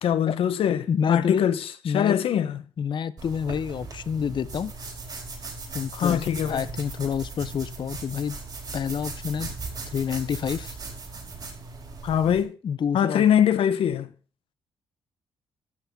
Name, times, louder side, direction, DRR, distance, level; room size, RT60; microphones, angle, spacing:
voice 1, 0.0-2.6 5.9-6.7 12.0-12.5 12.9-14.1, left 9 dB, 75° left, 1.1 m, -23 dB
voice 2, 0.9-1.4 1.8-2.2 2.8-4.7 5.7-6.2 6.5-8.4 8.7-9.5 9.9-10.8 12.3-12.4 12.6-13.2, left 7 dB, 55° left, 0.8 m, -28 dB
sound 1, 3.2-12.4, right 3 dB, 45° right, 5.0 m, -38 dB
12.0 x 7.0 x 5.4 m
cardioid pair, 80°, 10 cm